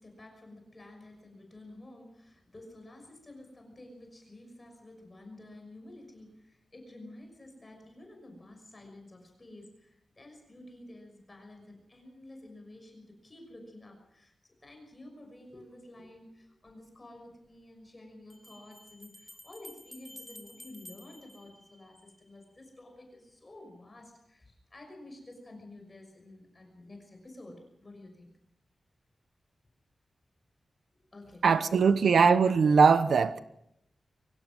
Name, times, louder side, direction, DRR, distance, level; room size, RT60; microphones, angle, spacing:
voice 1, 0.0-28.3 30.9-31.5 31.8-31.9, left 1 dB, 25° left, 6.0 m, -51 dB
sound 1, 16.7-16.8 18.3-22.3, left 1 dB, 5° left, 2.9 m, -51 dB
voice 2, 31.4-33.4, right 5 dB, 75° right, 0.9 m, -21 dB
24.5 x 17.5 x 6.3 m
wide cardioid pair, 125°, 0 cm